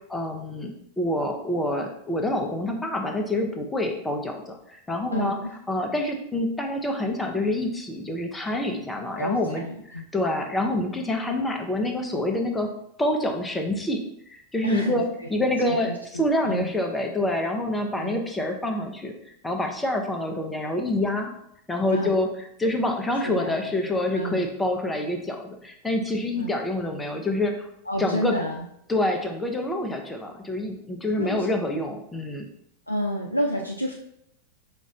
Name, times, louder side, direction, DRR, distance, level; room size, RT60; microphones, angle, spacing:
voice 1, 0.0-5.4 5.7-12.7 13.0-21.3 21.7-27.7 28.0-28.4 28.9-32.5, left 1 dB, 10° left, 3 dB, 0.6 m, -27 dB
voice 2, 5.1-5.5 9.2-10.0 14.6-15.0 15.6-16.7 18.0-18.2 21.9-22.1 23.2-24.4 26.4-26.5 27.9-28.7 31.2-31.5 32.9-33.9, equal, 85° left, 0 dB, 0.3 m, -30 dB
5.2 x 2.4 x 3.1 m, 0.74 s
figure-of-eight pair, 90°, 0 cm